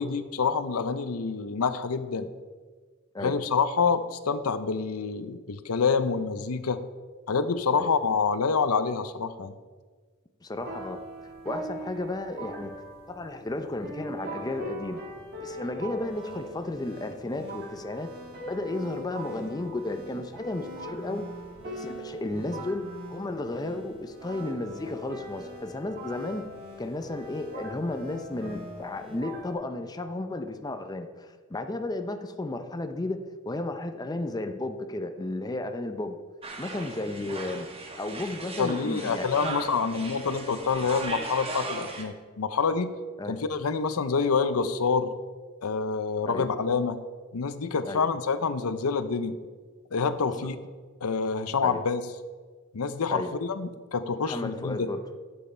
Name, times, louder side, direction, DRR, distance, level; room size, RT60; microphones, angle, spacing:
voice 1, 0.0-2.3 3.2-6.8 7.3-9.6 38.6-42.9 43.3-45.1 45.6-47.0 47.3-49.4 49.9-50.6 51.0-52.0 52.7-54.9, left 5 dB, 85° left, 12 dB, 0.6 m, -27 dB
voice 2, 10.4-11.0 11.4-12.7 13.1-15.0 15.4-18.1 18.5-21.3 21.6-22.8 23.1-26.4 26.8-33.2 33.4-36.2 36.6-37.7 38.0-39.5 43.2-43.4 46.3-46.5 47.8-48.0 51.6-51.8 53.1-53.3 54.2-55.0, left 2 dB, 20° left, 7 dB, 0.5 m, -33 dB
sound 1, 10.5-29.5, right 1 dB, 50° right, 1.7 m, -42 dB
sound 2, 16.0-29.1, left 1 dB, 65° right, 3.5 m, -47 dB
sound 3, 36.4-42.0, right 2 dB, 25° right, 1.2 m, -38 dB
11.0 x 7.5 x 4.4 m, 1.4 s
head